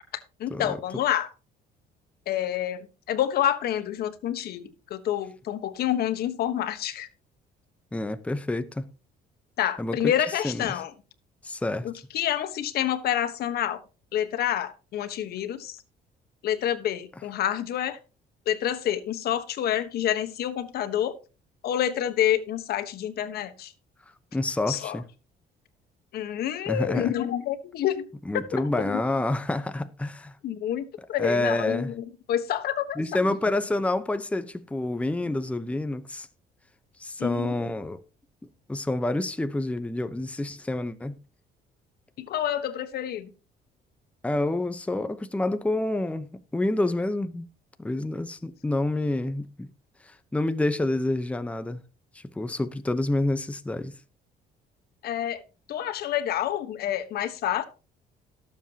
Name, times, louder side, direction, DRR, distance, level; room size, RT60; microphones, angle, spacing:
voice 1, 0.1-1.3 2.3-7.1 9.6-10.9 11.8-13.8 14.1-15.8 16.4-18.0 18.5-21.2 21.6-23.7 24.7-25.0 26.1-28.1 28.8-29.0 30.4-33.0 37.2-37.5 42.2-43.3 55.0-55.4 55.7-57.6, left 11 dB, 65° left, 1.3 m, -28 dB
voice 2, 7.9-8.8 9.8-10.1 10.4-10.7 11.4-11.9 24.3-25.0 26.7-27.1 28.3-30.3 31.2-31.9 33.0-36.3 37.0-38.0 38.7-41.2 44.2-47.5 47.8-49.7 50.3-51.8 52.1-53.9, left 2 dB, 5° left, 0.9 m, -28 dB
18.0 x 7.5 x 2.9 m
cardioid pair, 110°, 17 cm